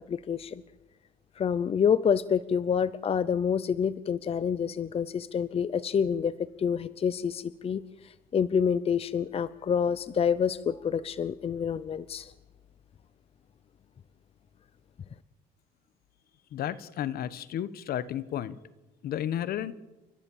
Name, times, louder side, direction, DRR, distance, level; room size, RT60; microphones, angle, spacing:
voice 1, 0.1-0.6 1.4-6.3 6.6-7.8 8.3-12.3, left 7 dB, 35° left, 17 dB, 0.7 m, -27 dB
voice 2, 16.5-18.6 19.0-19.7, left 11 dB, 65° left, 17 dB, 1.2 m, -32 dB
29.5 x 13.5 x 7.3 m, 1.1 s
cardioid pair, 110°, 17 cm